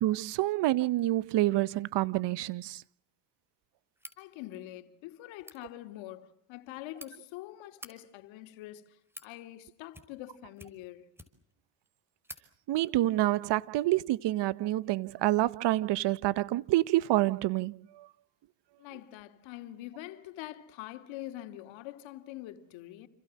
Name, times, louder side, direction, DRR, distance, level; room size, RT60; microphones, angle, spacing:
voice 1, 0.0-2.8 12.7-18.1, right 16 dB, 65° right, 1.0 m, -28 dB
sound 1, 3.9-4.2 5.3-5.6 6.6-7.1 7.7-7.9 8.7-9.3 9.9-10.3 10.6-11.5 11.9-12.0 12.2-12.4, equal, 5° right, 5.1 m, -49 dB
voice 2, 4.2-11.1 18.8-23.1, left 15 dB, 80° left, 2.9 m, -45 dB
29.5 x 25.5 x 7.6 m
supercardioid pair, 85°, 45 cm